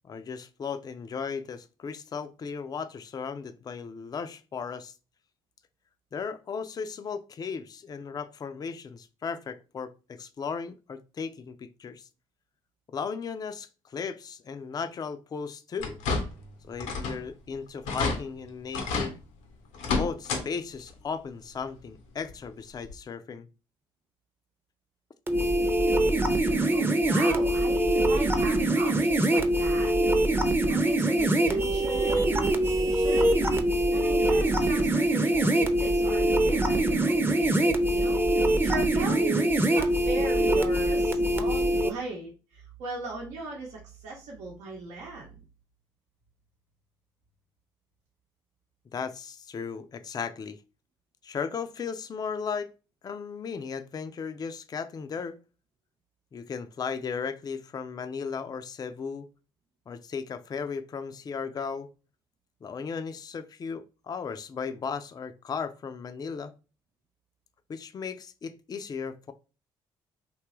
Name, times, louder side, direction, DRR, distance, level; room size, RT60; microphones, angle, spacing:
voice 1, 0.0-4.9 6.1-12.0 12.9-16.0 16.6-19.2 19.9-23.5 48.9-50.6 51.2-52.7 53.0-55.4 56.3-59.3 59.9-61.9 62.6-66.5 67.7-69.3, left 6 dB, 35° left, 0.4 m, -36 dB
sound 1, 15.8-16.5 16.8-17.2 17.5-17.6 17.9-18.2 18.7-19.1 19.7-20.4 20.8-20.9 22.3-22.4 22.9-23.0, left 4 dB, 80° left, 0.7 m, -29 dB
sound 2, 25.3-41.9, right 1 dB, 15° right, 0.6 m, -24 dB
voice 2, 26.7-29.9 30.7-33.4 33.9-38.3 38.6-45.3, right 3 dB, 75° right, 0.8 m, -38 dB
2.8 x 2.3 x 3.0 m
hypercardioid pair, 50°, 12 cm